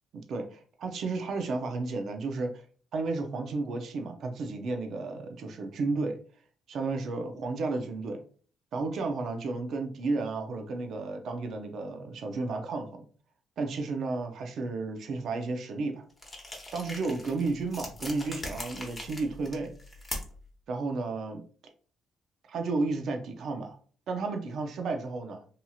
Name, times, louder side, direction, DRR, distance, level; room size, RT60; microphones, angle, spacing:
voice 1, 0.3-2.5 2.9-6.2 6.7-8.2 8.7-13.1 13.6-16.0 16.7-19.7 20.7-21.4 22.5-23.8 24.1-25.5, right 3 dB, 65° right, 4 dB, 0.5 m, -32 dB
sound 1, 16.2-20.5, left 1 dB, 25° left, 0.9 m, -41 dB
2.8 x 2.8 x 2.3 m, 0.43 s
cardioid pair, 90°, 0 cm